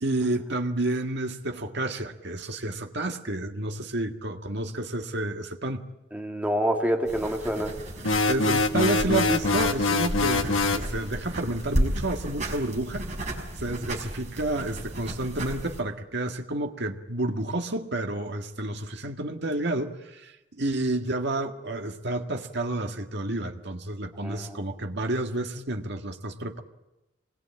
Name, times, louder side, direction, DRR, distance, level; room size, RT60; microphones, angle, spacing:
voice 1, 0.0-5.8 8.3-13.1 13.6-26.6, right 2 dB, 60° right, 1.9 m, -30 dB
voice 2, 6.1-7.7 24.2-24.6, equal, 10° right, 2.4 m, -27 dB
sound 1, 7.1-15.8, right 1 dB, 35° right, 5.8 m, -33 dB
sound 2, 8.0-10.9, left 3 dB, 85° left, 1.6 m, -24 dB
26.0 x 21.0 x 8.8 m
head